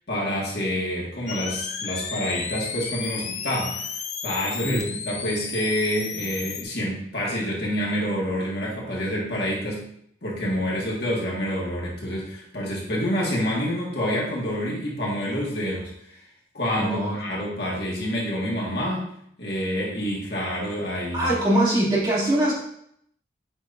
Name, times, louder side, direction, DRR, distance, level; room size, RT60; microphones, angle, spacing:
voice 1, 0.1-3.8 4.2-9.8 10.2-16.2 16.5-19.1 19.4-21.3, equal, 65° left, -4 dB, 1.9 m, -27 dB
sound 1, 1.3-6.6, left 6 dB, 35° left, 0.5 m, -33 dB
voice 2, 16.7-17.2 21.1-22.5, right 1 dB, 25° right, -9 dB, 2.7 m, -22 dB
8.0 x 5.1 x 2.7 m, 0.70 s
head